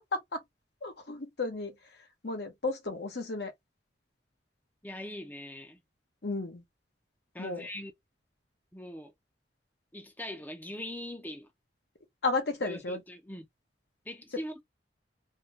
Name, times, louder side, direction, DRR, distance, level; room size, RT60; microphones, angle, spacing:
voice 1, 0.8-1.8 2.2-3.5 6.2-6.6 7.4-7.7 12.2-13.0, left 3 dB, 65° left, 0.9 m, -33 dB
voice 2, 4.8-5.8 7.3-7.9 8.7-9.1 9.9-11.5 12.6-13.5 14.0-14.6, left 1 dB, 10° left, 0.6 m, -41 dB
3.5 x 2.3 x 2.7 m
head